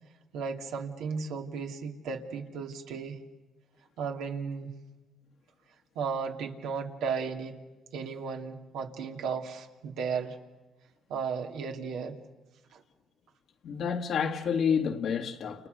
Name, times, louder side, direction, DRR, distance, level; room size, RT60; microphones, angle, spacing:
voice 1, 0.3-3.2 4.0-4.7 5.9-7.6 7.9-10.4 11.1-12.2 12.7-12.8, right 5 dB, 90° right, 2.7 m, -35 dB
voice 2, 13.6-15.7, left 7 dB, 70° left, 1.8 m, -29 dB
29.5 x 29.5 x 6.7 m
cardioid pair, 90°, 0 cm